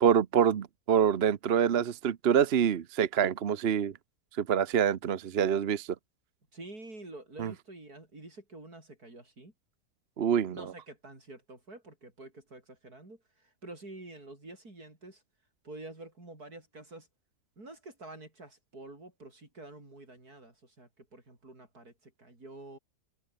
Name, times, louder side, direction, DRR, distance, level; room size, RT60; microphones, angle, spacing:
voice 1, 0.0-3.9 4.4-5.9 7.4-7.5 10.2-10.6, right 8 dB, 50° right, 0.9 m, -26 dB
voice 2, 6.5-9.5 10.5-15.2 15.6-17.1 17.6-22.8, right 2 dB, 70° right, 7.5 m, -48 dB
omnidirectional pair, 1.7 m